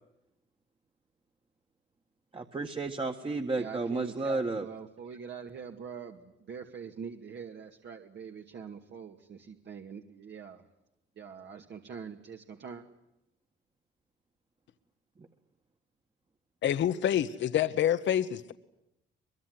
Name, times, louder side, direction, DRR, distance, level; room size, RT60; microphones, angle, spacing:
voice 1, 2.3-4.7, right 3 dB, 25° right, 4 dB, 1.8 m, -32 dB
voice 2, 3.6-10.6 11.2-12.8, right 6 dB, 60° right, 3 dB, 2.3 m, -44 dB
voice 3, 16.6-18.5, left 10 dB, 70° left, 11 dB, 1.2 m, -27 dB
23.5 x 23.0 x 9.7 m, 0.85 s
cardioid pair, 90°, 20 cm